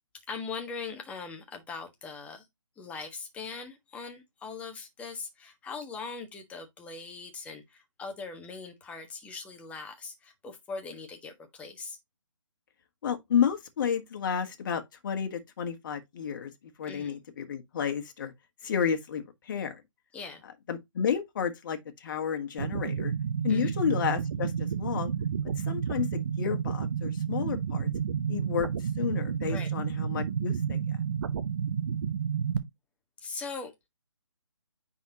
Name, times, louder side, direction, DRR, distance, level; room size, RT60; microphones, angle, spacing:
voice 1, 0.3-2.5 2.8-12.0 16.9-17.1 20.1-20.4 23.5-23.7 29.5-29.7 33.2-33.7, left 4 dB, 10° left, 1.3 m, -40 dB
voice 2, 13.0-16.5 16.8-18.3 18.6-19.8 20.7-23.1 23.4-25.1 25.7-27.9 28.3-30.8, left 7 dB, 40° left, 1.5 m, -31 dB
sound 1, 22.6-32.6, right 7 dB, 45° right, 0.9 m, -31 dB
9.2 x 4.2 x 2.9 m
figure-of-eight pair, 145°, 17 cm